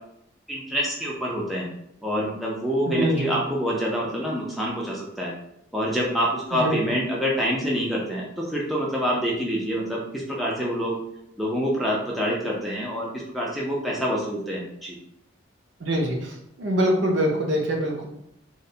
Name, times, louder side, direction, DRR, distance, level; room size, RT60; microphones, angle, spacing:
voice 1, 0.5-1.7 2.0-5.3 5.7-11.0 11.4-15.0, equal, ahead, -5 dB, 0.3 m, -26 dB
voice 2, 2.9-3.3 6.6-6.7 15.8-16.3 16.6-18.1, equal, 65° right, 0 dB, 0.5 m, -24 dB
2.3 x 2.1 x 2.7 m, 0.76 s
head